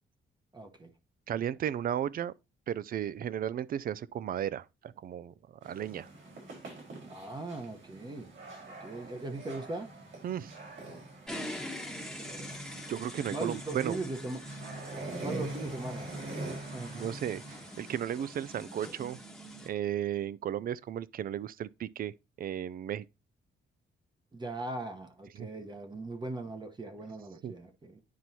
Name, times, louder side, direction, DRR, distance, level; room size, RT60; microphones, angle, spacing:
voice 1, 0.5-0.9 7.1-8.3 8.8-9.9 12.1-12.5 12.9-14.4 15.2-16.2 16.7-17.1 24.3-28.0, right 2 dB, 20° right, 0.9 m, -39 dB
voice 2, 1.3-2.3 2.7-5.3 5.6-6.1 10.2-10.5 12.9-14.0 16.9-19.2 19.6-22.1 22.4-23.0 25.4-25.5 27.4-27.5, right 10 dB, 45° right, 0.4 m, -34 dB
sound 1, 5.6-18.2, right 2 dB, 70° right, 4.3 m, -45 dB
sound 2, 11.3-19.7, equal, 5° left, 1.1 m, -43 dB
9.4 x 4.5 x 2.7 m
cardioid pair, 135°, 20 cm